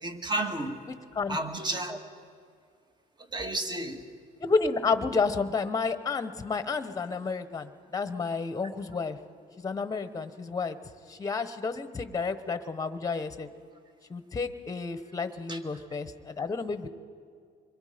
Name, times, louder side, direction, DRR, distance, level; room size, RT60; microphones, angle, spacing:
voice 1, 0.0-0.8 1.3-2.0 3.3-4.1 15.5-15.6, right 2 dB, 25° right, 5 dB, 1.9 m, -32 dB
voice 2, 4.4-9.2 9.6-10.8 11.1-13.5 14.1-16.9, left 4 dB, 20° left, 11 dB, 1.1 m, -30 dB
26.5 x 22.5 x 5.2 m, 2.2 s
cardioid pair, 110°, 17 cm